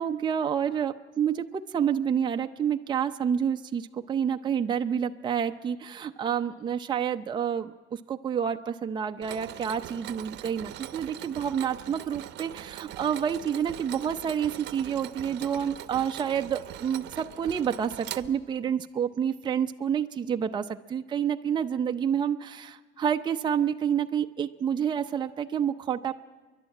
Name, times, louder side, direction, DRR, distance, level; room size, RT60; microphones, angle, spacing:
voice 1, 0.0-1.4 1.7-26.1, right 8 dB, 20° right, 5 dB, 0.5 m, -29 dB
Mechanisms, 9.2-18.8, right 13 dB, 60° right, 0.8 m, -42 dB
30.0 x 11.5 x 8.8 m, 1.4 s
cardioid pair, 145°, 20 cm